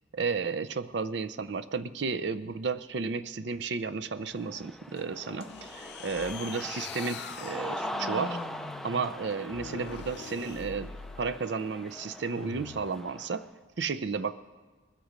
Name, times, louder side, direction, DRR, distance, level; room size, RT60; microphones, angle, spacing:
voice 1, 0.1-8.4 8.8-10.9 11.2-13.5 13.8-14.4, right 4 dB, 60° right, 13 dB, 0.5 m, -33 dB
Cheering, 4.2-13.4, left 1 dB, ahead, 0.4 m, -41 dB
sound 1, 5.0-13.0, left 2 dB, 30° left, 0.8 m, -55 dB
sound 2, 5.5-11.4 12.3-12.9, left 5 dB, 60° left, 0.5 m, -43 dB
20.5 x 8.1 x 5.1 m, 1.3 s
head